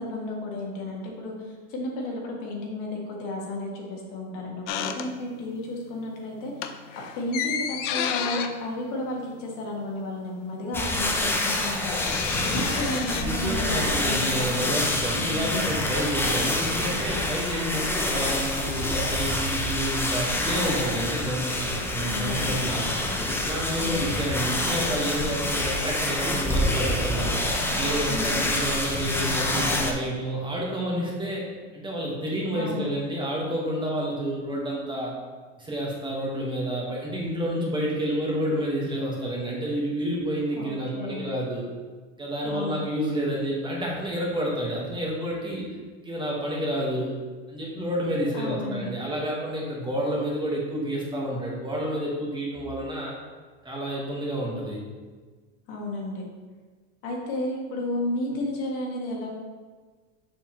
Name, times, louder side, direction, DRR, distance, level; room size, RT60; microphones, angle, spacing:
voice 1, 0.0-6.5 7.1-12.0 12.4-14.4 15.1-15.7 22.0-22.4 23.8-24.1 28.1-28.5 32.5-32.9 40.5-41.3 42.4-42.8 48.3-48.9 55.7-56.2 57.0-59.3, left 1 dB, 55° left, -1 dB, 1.7 m, -32 dB
sound 1, 4.7-5.6 5.9-6.1 6.5-10.0 10.2-10.3 10.5-13.2, left 9 dB, 80° left, 0.6 m, -32 dB
sound 2, 10.7-29.9, left 1 dB, 5° left, 0.5 m, -27 dB
voice 2, 12.1-23.0 23.4-27.3 27.6-31.5 31.7-35.2 35.6-41.7 42.2-45.7 46.0-47.2 47.5-53.2 53.6-54.8, right 1 dB, 15° right, -4 dB, 1.4 m, -29 dB
6.9 x 5.4 x 3.0 m, 1.4 s
supercardioid pair, 130°, 36 cm